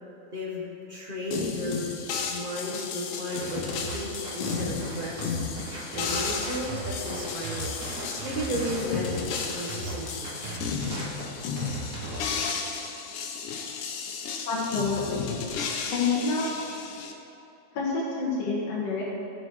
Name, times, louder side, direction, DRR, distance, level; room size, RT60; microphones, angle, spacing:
voice 1, 0.3-1.9 2.3-5.4 5.9-7.8 8.2-10.3, equal, 25° right, -4 dB, 1.1 m, -33 dB
sound 1, 1.3-17.1, left 5 dB, 90° left, 2.4 m, -34 dB
sound 2, 3.3-12.3, right 2 dB, 70° right, 2.7 m, -37 dB
voice 2, 14.5-15.3 15.9-16.5 17.7-19.0, left 4 dB, 60° left, -5 dB, 2.5 m, -27 dB
15.0 x 6.3 x 4.8 m, 2.9 s
omnidirectional pair, 3.5 m